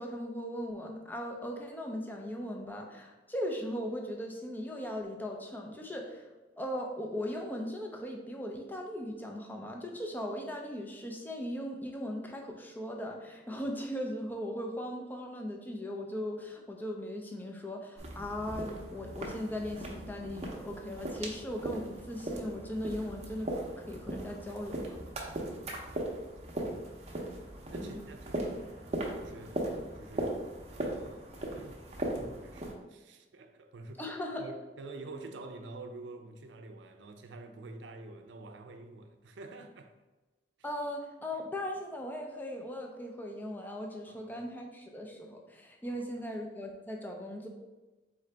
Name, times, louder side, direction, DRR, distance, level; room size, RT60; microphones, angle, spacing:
voice 1, 0.0-6.3 6.6-23.5 23.8-25.0 27.8-28.0 34.0-34.5 40.6-47.5, equal, 10° left, 0.5 m, -38 dB
sound 1, 18.0-32.7, right 1 dB, 35° right, 0.7 m, -38 dB
voice 2, 25.5-27.2 27.7-28.6 29.2-29.6 29.9-31.8 32.4-34.0 34.4-39.9 44.1-44.3 45.8-46.0, right 2 dB, 90° right, 0.5 m, -48 dB
3.8 x 3.7 x 3.3 m
head